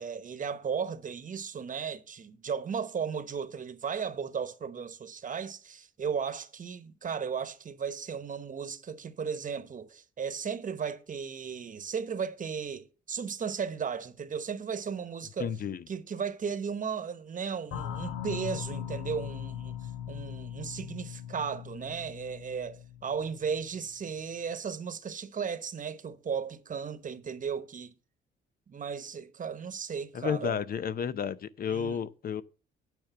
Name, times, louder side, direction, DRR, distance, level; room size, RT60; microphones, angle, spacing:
voice 1, 0.0-15.5 15.9-27.9 28.7-30.6 31.7-32.0, right 6 dB, 40° right, 1.1 m, -35 dB
voice 2, 15.4-15.8 30.1-32.4, left 7 dB, 50° left, 0.7 m, -32 dB
sound 1, 17.7-24.0, left 10 dB, 90° left, 1.2 m, -40 dB
9.3 x 5.2 x 7.2 m
cardioid pair, 90°, 20 cm